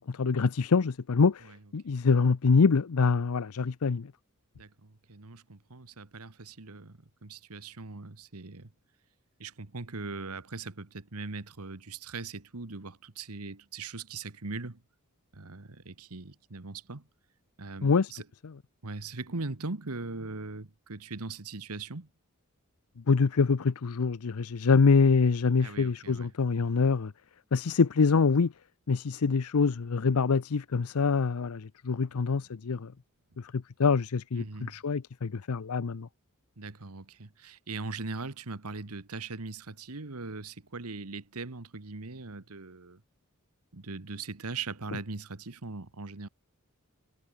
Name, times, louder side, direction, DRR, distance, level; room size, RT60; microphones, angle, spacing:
voice 1, 0.1-4.1 17.8-18.1 18.4-18.5 23.1-27.1 27.5-28.5 28.9-32.9 33.4-36.1, left 5 dB, 75° left, 0.6 m, -25 dB
voice 2, 4.6-8.7 9.4-14.8 15.3-17.0 17.6-18.2 18.8-22.1 25.6-26.3 34.4-34.8 36.6-43.0 43.7-46.3, right 3 dB, 80° right, 1.5 m, -40 dB
head